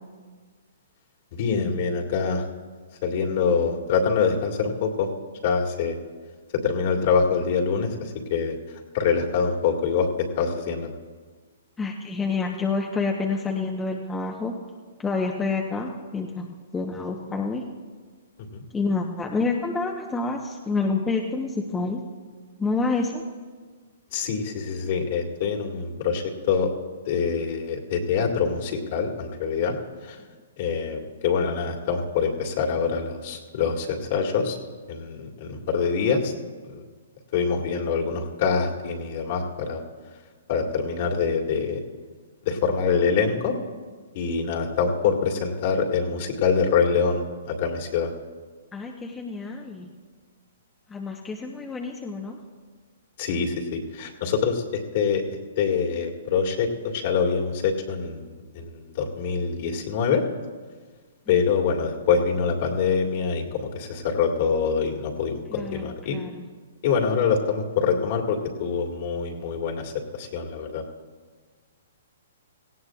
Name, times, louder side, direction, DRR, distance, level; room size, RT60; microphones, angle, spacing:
voice 1, 1.3-2.4 3.0-5.1 5.4-6.0 6.6-8.6 8.9-10.9 18.5-18.6 24.1-26.7 27.1-29.8 30.0-30.2 30.6-34.6 34.9-36.3 36.6-36.8 37.3-39.8 40.5-41.8 42.5-43.5 44.1-48.1 53.2-55.2 55.6-60.2 61.3-66.2 66.8-70.8, left 6 dB, 50° left, 1 dB, 2.1 m, -25 dB
voice 2, 11.8-14.6 15.0-16.5 16.7-17.7 18.7-22.0 22.6-23.2 45.2-45.3 48.7-49.9 50.9-52.4 61.3-61.6 65.5-66.5, left 4 dB, 10° left, 0 dB, 1.0 m, -28 dB
18.0 x 16.0 x 2.4 m, 1.5 s
hypercardioid pair, 125°, 0 cm